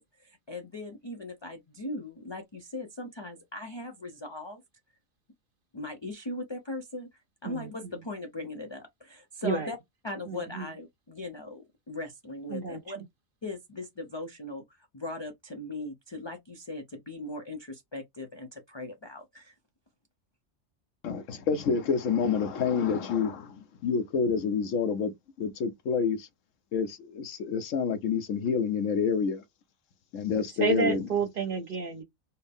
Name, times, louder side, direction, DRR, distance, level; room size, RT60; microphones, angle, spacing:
voice 1, 0.0-4.6 5.7-7.1 7.4-9.8 10.0-13.0 13.4-19.5, left 2 dB, 30° left, 0.5 m, -39 dB
voice 2, 7.4-8.0 9.4-9.7 10.3-10.7 12.5-12.8 30.6-32.0, right 5 dB, 45° right, 0.9 m, -30 dB
voice 3, 21.0-25.1 25.4-26.3 26.7-29.4 30.1-31.1, left 6 dB, 70° left, 1.1 m, -28 dB
4.4 x 2.1 x 3.5 m
omnidirectional pair, 1.4 m